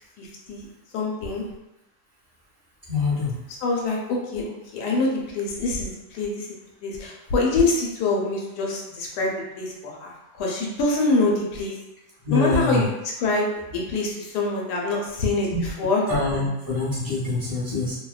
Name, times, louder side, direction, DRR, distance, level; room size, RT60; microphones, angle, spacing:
voice 1, 0.2-0.7 0.9-1.4 3.6-6.5 6.8-9.3 9.6-11.7 12.3-12.9 13.2-13.5 13.7-16.0, left 3 dB, 85° left, -1 dB, 1.1 m, -25 dB
voice 2, 2.9-3.3 12.2-12.8 15.5-15.6 16.1-18.0, left 3 dB, 25° left, -8 dB, 0.5 m, -25 dB
2.7 x 2.1 x 2.3 m, 0.93 s
omnidirectional pair, 1.7 m